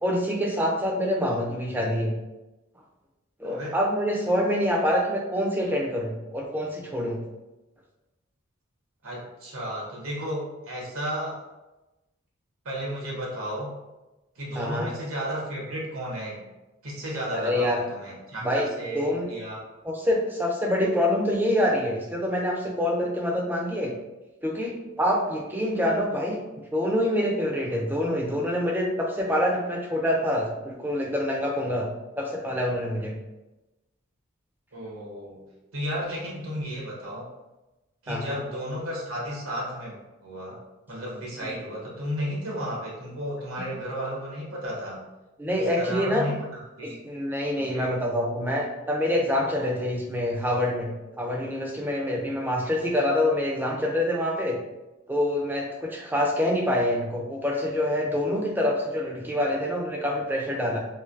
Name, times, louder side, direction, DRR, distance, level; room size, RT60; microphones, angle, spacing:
voice 1, 0.0-2.1 3.4-7.2 14.6-14.9 17.3-17.8 18.4-19.3 19.8-23.9 24.4-26.4 26.7-31.9 32.2-33.1 38.1-38.4 41.4-41.5 45.4-46.3 46.8-50.9 51.2-54.6 55.1-60.8, left 1 dB, 10° right, -1 dB, 0.4 m, -26 dB
voice 2, 3.4-3.8 9.0-11.4 12.6-13.7 14.3-16.4 16.8-19.7 34.7-35.4 35.7-37.3 38.0-40.6 40.9-45.0 45.5-47.0 47.6-48.0, equal, 85° right, -4 dB, 1.0 m, -33 dB
3.1 x 2.7 x 2.6 m, 1.0 s
head